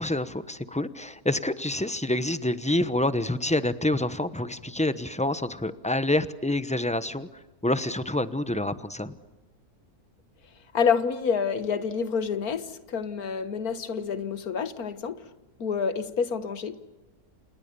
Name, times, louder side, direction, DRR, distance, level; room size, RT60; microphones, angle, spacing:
voice 1, 0.0-7.3 7.6-9.2, left 1 dB, 5° left, 0.8 m, -27 dB
voice 2, 10.7-15.3 15.6-16.8, left 6 dB, 75° left, 1.9 m, -28 dB
29.0 x 28.5 x 6.9 m
omnidirectional pair, 1.6 m